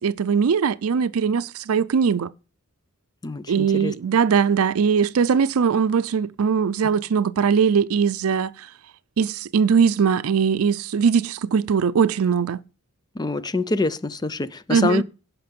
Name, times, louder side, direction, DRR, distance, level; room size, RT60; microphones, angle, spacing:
voice 1, 0.0-2.3 3.5-8.7 9.2-12.6 14.7-15.0, right 6 dB, 80° right, 0.4 m, -20 dB
voice 2, 3.2-3.9 13.2-15.0, left 3 dB, 20° left, 0.5 m, -25 dB
16.5 x 5.8 x 5.3 m
head